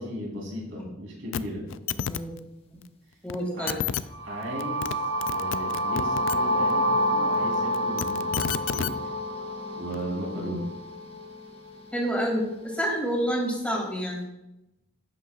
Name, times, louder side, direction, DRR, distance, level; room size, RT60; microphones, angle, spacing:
voice 1, 0.0-1.6 3.5-3.8 4.2-4.9 5.3-8.9 9.7-10.6, equal, 65° right, -3 dB, 3.4 m, -36 dB
sound 1, 1.3-1.4 1.7-2.2 3.3-3.4 3.7-4.0 4.6-4.9 5.2-6.4 7.7-8.9 9.9-10.0, left 9 dB, 65° left, 0.3 m, -29 dB
voice 2, 3.2-3.8 10.3-10.6 11.9-14.2, equal, 5° left, -3 dB, 2.4 m, -28 dB
sound 2, 4.1-12.0, equal, 30° left, 1.1 m, -28 dB
11.5 x 8.4 x 2.4 m, 0.91 s
head